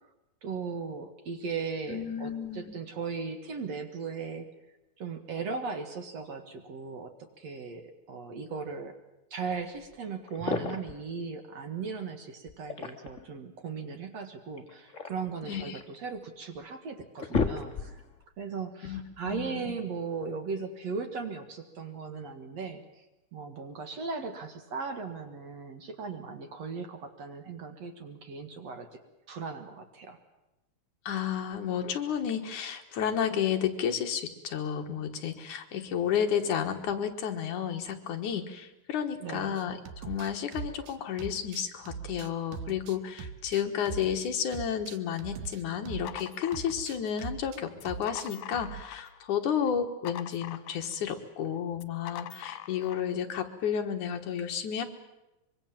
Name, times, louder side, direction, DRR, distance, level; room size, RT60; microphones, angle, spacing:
voice 1, 0.4-4.5 5.0-9.0 9.3-18.0 18.4-23.1 23.3-29.0 29.3-30.2 39.2-39.6, right 5 dB, 55° right, 7 dB, 2.5 m, -37 dB
voice 2, 1.9-2.7 15.4-15.8 18.8-19.7 31.1-54.8, left 8 dB, 65° left, 5 dB, 2.7 m, -32 dB
sound 1, 9.8-9.9 10.3-11.0 12.5-13.3 14.6-16.0 16.5-16.6 17.0-18.1, left 4 dB, 35° left, 1.3 m, -33 dB
sound 2, 39.6-46.3 46.5-47.6 47.9-48.8, right 6 dB, 70° right, 2.5 m, -41 dB
sound 3, 45.7-47.2 47.7-49.2 49.5-51.1 51.7-53.1, left 12 dB, 85° left, 2.9 m, -43 dB
24.5 x 23.5 x 7.4 m, 0.97 s
omnidirectional pair, 4.1 m